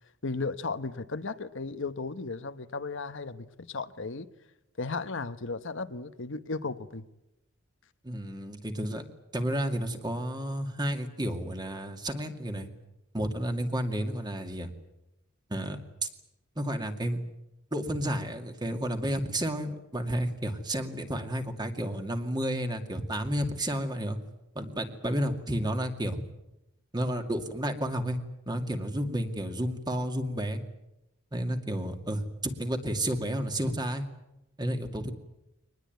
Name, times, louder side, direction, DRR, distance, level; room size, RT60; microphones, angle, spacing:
voice 1, 0.2-4.3 4.8-7.0, left 3 dB, 60° left, 10 dB, 1.1 m, -35 dB
voice 2, 8.0-9.0 9.3-12.7 13.1-14.7 15.5-16.1 16.6-17.2 17.7-24.2 24.6-26.2 26.9-28.2 28.5-30.6 31.3-34.0 34.6-35.1, right 1 dB, 20° right, 6 dB, 2.3 m, -31 dB
24.0 x 20.0 x 9.4 m, 0.90 s
head